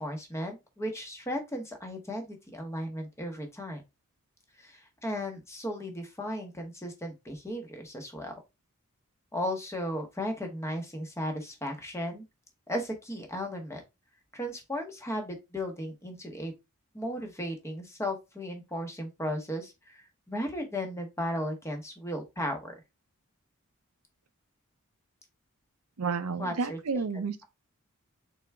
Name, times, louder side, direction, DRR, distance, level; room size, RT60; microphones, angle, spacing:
voice 1, 0.0-3.8 4.6-8.3 9.3-12.2 12.7-13.8 14.3-16.5 16.9-22.7 26.4-26.8, equal, 15° left, 0.9 m, -35 dB
voice 2, 26.0-27.5, right 5 dB, 90° right, 0.6 m, -31 dB
3.8 x 3.4 x 3.3 m
head